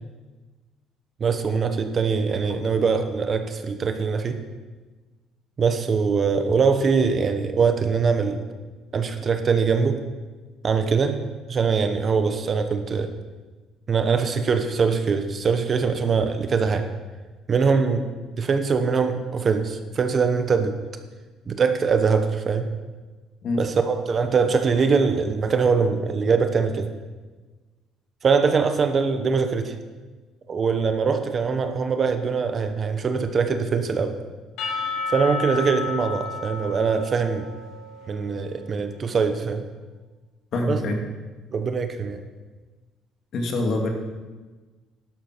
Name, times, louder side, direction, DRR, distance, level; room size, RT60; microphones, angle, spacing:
voice 1, 1.2-4.4 5.6-8.4 8.9-10.0 10.6-11.2 11.5-13.1 13.9-16.9 17.5-18.1 18.3-20.7 21.5-22.7 23.6-26.9 28.2-29.8 30.5-34.2 35.1-37.4 38.1-39.6 40.7-40.8 41.5-42.2, right 5 dB, 30° right, 7 dB, 0.9 m, -22 dB
Percussion / Church bell, 34.6-38.6, left 4 dB, 70° left, 3.0 m, -32 dB
voice 2, 40.5-41.0 43.3-43.9, left 2 dB, 50° left, 2 dB, 2.2 m, -24 dB
12.0 x 12.0 x 6.0 m, 1.3 s
cardioid pair, 155°, 0 cm